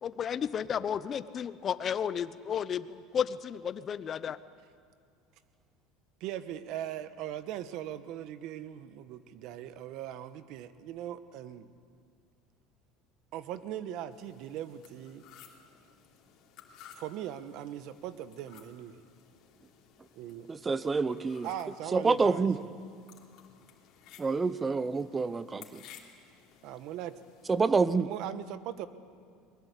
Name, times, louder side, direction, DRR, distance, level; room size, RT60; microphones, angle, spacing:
voice 1, 0.0-4.4, left 8 dB, 35° left, 14 dB, 0.8 m, -33 dB
voice 2, 6.2-11.7 13.3-15.2 16.9-19.0 20.1-20.5 21.4-22.5 26.6-27.2 28.0-28.9, right 11 dB, 60° right, 13 dB, 1.2 m, -40 dB
sound 1, 14.1-27.6, left 8 dB, 55° left, 3.2 m, -57 dB
voice 3, 20.5-21.5 21.9-22.6 24.2-25.8 27.5-28.1, right 4 dB, 20° right, 16 dB, 0.7 m, -27 dB
22.0 x 21.0 x 8.3 m, 2.2 s
supercardioid pair, 130°, 0 cm